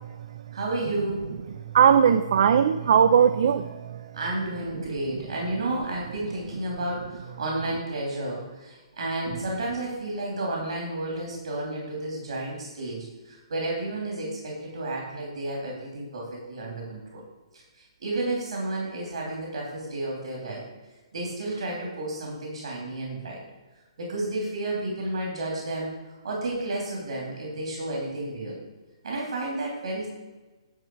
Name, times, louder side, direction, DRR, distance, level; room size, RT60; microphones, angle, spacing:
voice 1, 0.5-1.3 4.1-17.2 17.8-20.6 21.1-23.4 24.0-28.6 29.0-30.1, right 2 dB, 80° right, -2 dB, 3.2 m, -31 dB
voice 2, 1.7-4.1, right 8 dB, 55° right, 10 dB, 0.5 m, -19 dB
10.5 x 6.0 x 4.7 m, 1.2 s
hypercardioid pair, 160°, 3 cm